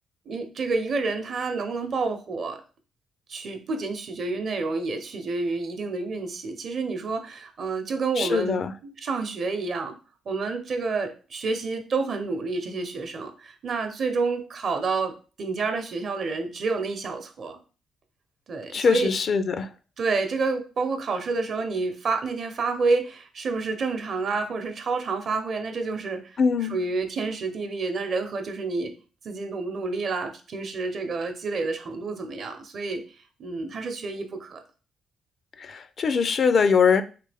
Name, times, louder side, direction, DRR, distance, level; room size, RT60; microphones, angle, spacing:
voice 1, 0.3-2.6 3.3-10.0 10.3-17.6 18.5-19.1 20.0-28.9 29.2-33.0 33.4-34.6, right 4 dB, 55° right, 0.7 m, -29 dB
voice 2, 8.2-8.7 18.7-19.7 26.4-26.8 35.6-37.0, left 5 dB, 50° left, 0.4 m, -22 dB
3.3 x 2.9 x 3.4 m
cardioid pair, 90°, 0 cm